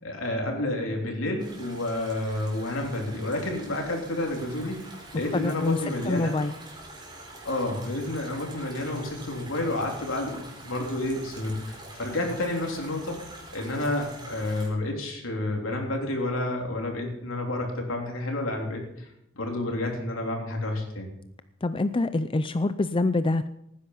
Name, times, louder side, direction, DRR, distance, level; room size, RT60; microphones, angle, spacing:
voice 1, 0.0-6.4 7.5-19.1 19.3-21.1, left 1 dB, 80° left, 1 dB, 3.6 m, -30 dB
sound 1, 1.4-14.7, right 1 dB, 25° right, 4.2 m, -45 dB
voice 2, 5.3-5.8 6.1-6.5 21.6-23.5, left 2 dB, 25° left, 12 dB, 0.5 m, -25 dB
18.0 x 10.0 x 5.7 m, 0.78 s
head